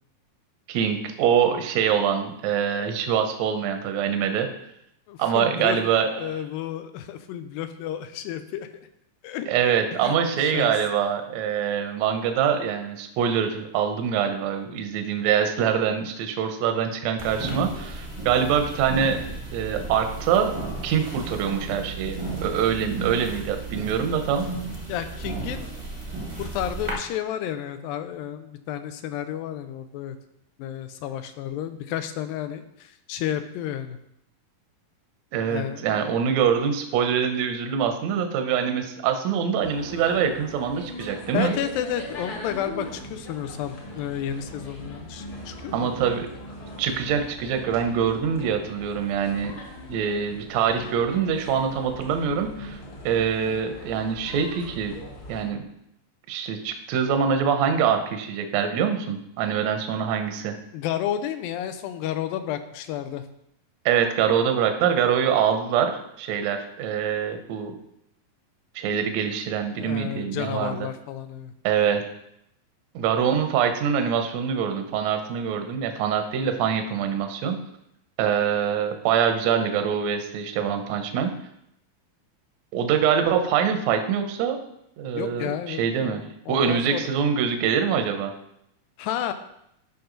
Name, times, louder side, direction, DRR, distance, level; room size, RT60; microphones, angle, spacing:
voice 1, 0.7-4.5 5.2-6.4 9.5-19.2 19.5-20.5 20.8-24.5 35.3-41.5 45.7-46.3 46.8-49.5 49.9-52.8 53.0-54.9 55.3-55.6 56.3-60.5 63.8-67.7 68.7-70.8 71.6-72.0 72.9-77.6 78.2-81.3 82.7-84.6 85.0-86.2 86.5-88.3, right 7 dB, 70° right, 6 dB, 1.7 m, -24 dB
voice 2, 5.1-5.8 6.2-8.7 9.2-9.5 9.9-10.7 24.9-25.7 26.4-30.2 30.6-34.0 35.5-36.2 41.3-46.1 60.7-63.3 69.8-71.5 85.1-87.1 89.0-89.3, left 10 dB, 85° left, 10 dB, 2.4 m, -31 dB
sound 1, 17.2-26.9, right 3 dB, 30° right, 0.7 m, -34 dB
sound 2, 39.6-55.5, equal, 50° left, 1.6 m, -40 dB
11.0 x 5.6 x 3.9 m, 0.78 s
omnidirectional pair, 4.1 m